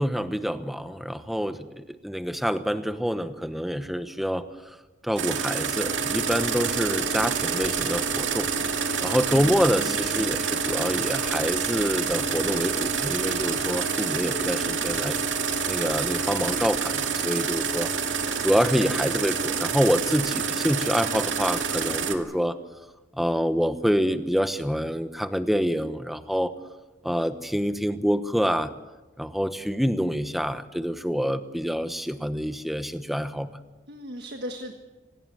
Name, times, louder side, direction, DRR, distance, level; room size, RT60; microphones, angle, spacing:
voice 1, 0.0-4.8 5.0-8.7 9.0-15.2 15.7-22.6 23.1-26.5 27.0-28.7 29.2-33.6, equal, ahead, 10 dB, 1.0 m, -27 dB
sound 1, 5.2-22.1, right 6 dB, 85° right, 2.2 m, -27 dB
sound 2, 5.9-16.8, left 4 dB, 75° left, 5.4 m, -45 dB
voice 2, 33.9-34.7, equal, 60° right, 4 dB, 1.6 m, -37 dB
26.0 x 18.5 x 7.7 m, 1.1 s
head